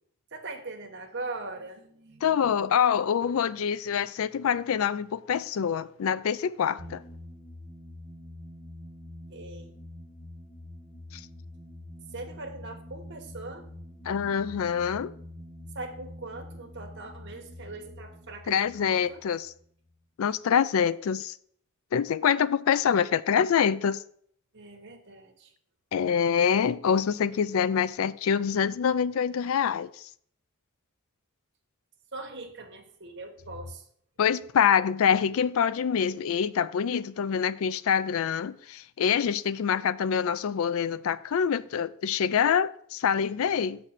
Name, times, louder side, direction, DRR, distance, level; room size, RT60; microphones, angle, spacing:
voice 1, 0.3-2.5 9.3-9.8 12.1-13.6 15.7-19.2 24.5-25.5 32.1-33.8, right 2 dB, 55° right, 1.3 m, -41 dB
voice 2, 2.2-7.0 11.1-11.2 14.1-15.1 18.5-19.5 20.2-21.3 21.9-24.0 25.9-29.9 34.2-43.8, left 7 dB, 70° left, 0.3 m, -25 dB
sound 1, 6.8-20.0, left 1 dB, 5° right, 2.5 m, -46 dB
7.3 x 4.1 x 6.4 m
head